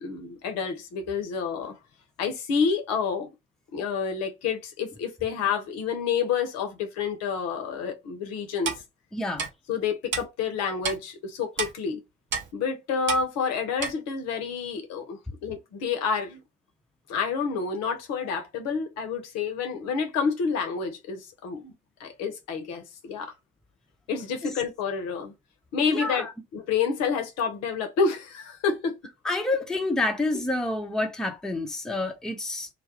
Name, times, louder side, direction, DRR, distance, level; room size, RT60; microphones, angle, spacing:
voice 1, 0.0-1.8 2.2-3.3 3.7-8.7 9.7-12.0 12.5-16.4 17.1-21.7 22.0-23.3 24.1-25.3 25.7-26.3 26.5-29.0, left 6 dB, 60° left, 0.6 m, -29 dB
Clock, 8.6-8.8 9.4-9.5 10.1-10.2 10.8-11.0 11.6-11.7 12.3-12.5 13.1-13.2 13.8-13.9, right 6 dB, 40° right, 0.6 m, -29 dB
voice 2, 9.1-9.5 24.4-24.5 25.9-26.3 29.2-32.7, left 2 dB, ahead, 0.6 m, -28 dB
2.2 x 2.0 x 2.8 m
figure-of-eight pair, 45°, 29 cm